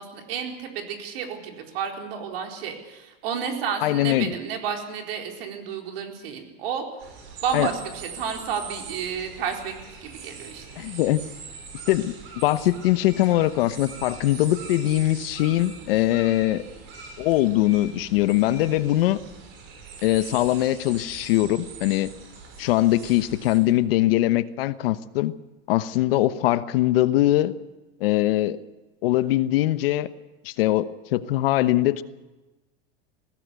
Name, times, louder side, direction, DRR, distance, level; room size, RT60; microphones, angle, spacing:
voice 1, 0.0-7.0 7.4-9.7 10.0-10.9, right 7 dB, 70° right, 2 dB, 4.4 m, -31 dB
voice 2, 3.8-4.3 7.5-7.7 10.8-11.2 11.9-16.6 17.2-19.2 20.0-22.1 22.6-25.3 25.7-27.5 28.0-28.6 29.0-30.1 30.4-32.0, left 15 dB, 70° left, 14 dB, 1.0 m, -22 dB
sound 1, 7.0-23.6, right 5 dB, 40° right, 5.7 m, -42 dB
21.0 x 16.5 x 8.3 m, 1.1 s
supercardioid pair, 165°, 30 cm